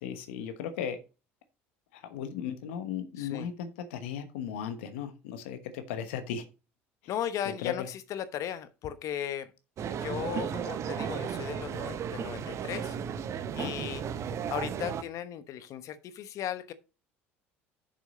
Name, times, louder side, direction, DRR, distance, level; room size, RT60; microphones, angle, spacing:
voice 1, 0.0-1.0 1.9-6.4 7.4-7.9 13.6-13.7, left 8 dB, 75° left, 1.1 m, -36 dB
voice 2, 3.2-3.5 7.1-9.5 9.9-13.0 13.6-14.0 14.5-16.7, left 10 dB, 55° left, 1.0 m, -36 dB
sound 1, 9.8-15.0, right 8 dB, 50° right, 0.9 m, -34 dB
7.0 x 6.0 x 5.0 m
hypercardioid pair, 65°, 7 cm